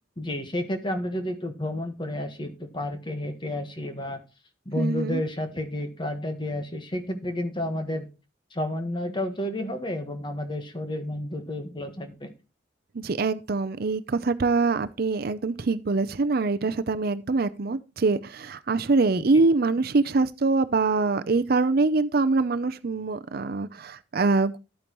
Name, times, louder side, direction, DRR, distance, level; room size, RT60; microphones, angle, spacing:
voice 1, 0.2-4.2 4.6-8.1 8.5-12.3 19.3-19.4, left 1 dB, 25° left, 1.5 m, -31 dB
voice 2, 4.8-5.2 12.9-24.6, right 3 dB, 55° right, 0.6 m, -24 dB
12.0 x 8.8 x 3.0 m
head